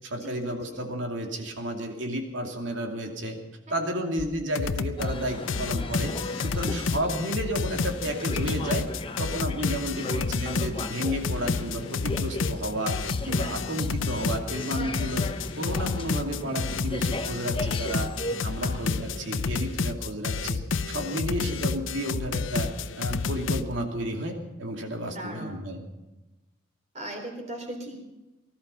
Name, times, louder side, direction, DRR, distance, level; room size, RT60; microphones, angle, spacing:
voice 1, 0.0-3.4 3.7-6.1 6.4-8.9 9.2-15.3 15.6-18.1 18.4-20.6 20.9-22.7 23.0-25.8, right 1 dB, 75° right, 3 dB, 2.6 m, -32 dB
voice 2, 3.7-4.1 6.6-6.9 18.6-18.8 21.3-21.6 25.1-25.7 26.9-28.1, right 1 dB, 40° right, 2 dB, 3.8 m, -39 dB
sound 1, 4.2-4.3 4.6-5.2 5.5-23.6, left 4 dB, 90° left, 0.7 m, -30 dB
sound 2, 5.0-18.4, left 2 dB, 30° left, 0.9 m, -38 dB
19.0 x 13.5 x 5.6 m, 1.0 s
head